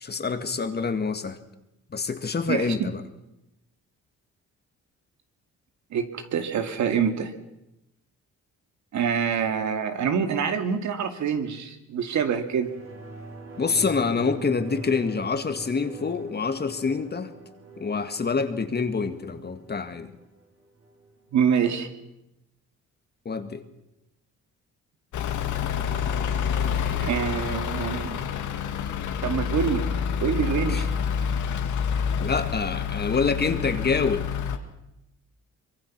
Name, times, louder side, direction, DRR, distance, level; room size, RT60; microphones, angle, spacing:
voice 1, 0.0-1.4 1.9-3.0 13.6-17.3 17.8-20.1 23.3-23.6 30.7-30.8 32.2-34.3, left 5 dB, 35° left, 9 dB, 2.0 m, -26 dB
voice 2, 5.9-7.3 8.9-12.7 21.3-21.9 27.0-28.2 29.2-29.9 30.2-30.9, right 7 dB, 70° right, 7 dB, 2.4 m, -26 dB
sound 1, 12.5-21.6 21.9-22.0, right 2 dB, 45° right, 5.1 m, -44 dB
Truck / Idling, 25.1-34.6, left 7 dB, 80° left, 2.2 m, -28 dB
24.5 x 22.5 x 6.1 m, 0.89 s
cardioid pair, 90°, 30 cm